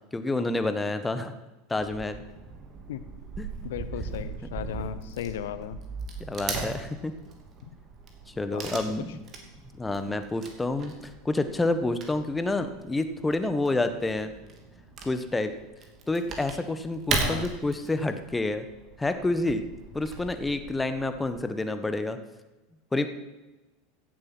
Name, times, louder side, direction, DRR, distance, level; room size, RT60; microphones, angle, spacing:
voice 1, 0.1-1.3 1.7-2.2 3.4-3.5 6.2-7.1 8.4-9.2 9.8-14.3 15.0-15.5 16.1-18.6 19.0-19.6 19.9-22.2 22.9-23.1, left 2 dB, 10° left, 9 dB, 1.3 m, -28 dB
Wood / Tearing, 1.8-21.4, right 4 dB, 40° right, 2.8 m, -38 dB
voice 2, 3.6-5.8 7.6-7.7 8.5-8.6 17.2-17.5, left 10 dB, 80° left, 13 dB, 0.9 m, -35 dB
16.0 x 7.7 x 6.2 m, 1.1 s
hypercardioid pair, 100°, 0 cm